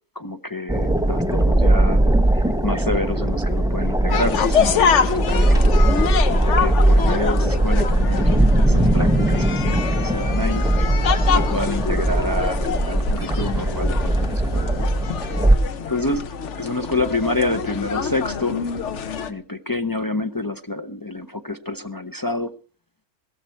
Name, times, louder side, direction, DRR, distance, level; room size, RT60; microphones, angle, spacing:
voice 1, 0.2-2.0 2.3-5.7 6.4-10.6 11.3-14.9 15.9-16.2 16.6-18.6 19.3-22.5, left 2 dB, 30° left, 7 dB, 0.4 m, -28 dB
sound 1, 0.7-15.6, right 1 dB, 5° right, 0.9 m, -19 dB
sound 2, 4.1-19.3, left 6 dB, 60° left, 1.2 m, -26 dB
16.0 x 14.0 x 4.5 m, 0.39 s
omnidirectional pair, 1.4 m